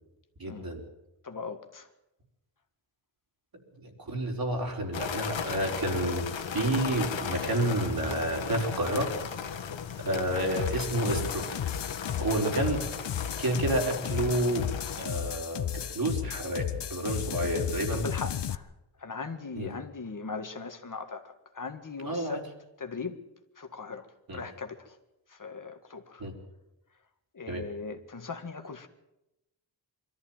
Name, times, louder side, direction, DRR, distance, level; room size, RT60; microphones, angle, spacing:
voice 1, 0.4-0.8 4.0-9.1 10.0-11.5 12.2-12.8 13.4-14.7 15.0-18.1 19.6-19.7 22.0-22.4 24.3-24.4 26.2-26.3 27.5-27.6, right 1 dB, 50° right, 1 dB, 4.7 m, -30 dB
voice 2, 1.2-1.9 12.3-12.5 17.9-18.7 19.0-22.4 22.8-23.2 23.6-24.1 24.3-25.0 25.3-26.2 27.3-28.9, left 4 dB, 45° left, 6 dB, 1.8 m, -39 dB
sound 1, 4.9-15.1, left 7 dB, 85° left, 1.8 m, -36 dB
sound 2, 10.6-18.6, left 10 dB, 65° left, 0.9 m, -34 dB
22.5 x 14.0 x 9.0 m, 0.91 s
wide cardioid pair, 90°, 44 cm